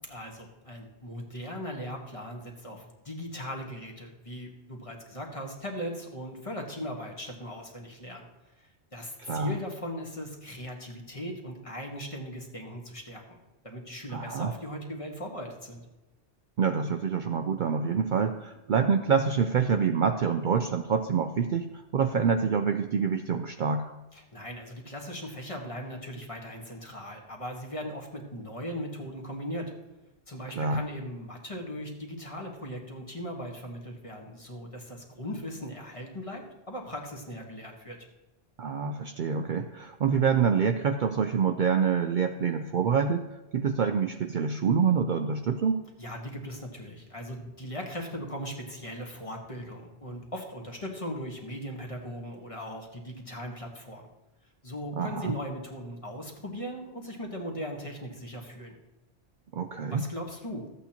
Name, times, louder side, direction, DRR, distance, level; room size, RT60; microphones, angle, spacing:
voice 1, 0.1-8.3 8.6-13.4 13.6-15.8 24.1-29.7 30.3-38.0 46.0-54.0 54.6-58.7 59.9-60.7, equal, 30° left, 0 dB, 1.4 m, -39 dB
voice 2, 9.2-9.5 14.1-14.5 16.6-23.9 30.6-30.8 38.6-43.3 43.5-45.8 55.0-55.3 59.5-60.1, right 6 dB, 60° right, 6 dB, 0.6 m, -26 dB
13.5 x 8.2 x 2.9 m, 1.0 s
omnidirectional pair, 1.1 m